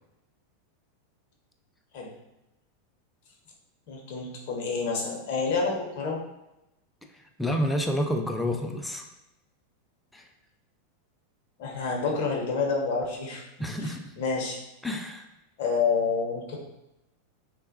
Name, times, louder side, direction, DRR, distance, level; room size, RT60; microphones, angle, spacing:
voice 1, 3.9-6.2 11.6-13.4 14.2-14.6 15.6-16.6, left 4 dB, 50° left, -1 dB, 0.6 m, -28 dB
voice 2, 7.1-9.1 10.1-10.3 13.6-14.1 14.8-15.2, equal, 5° left, 3 dB, 0.3 m, -29 dB
3.1 x 2.0 x 2.6 m, 0.93 s
figure-of-eight pair, 90°, 0 cm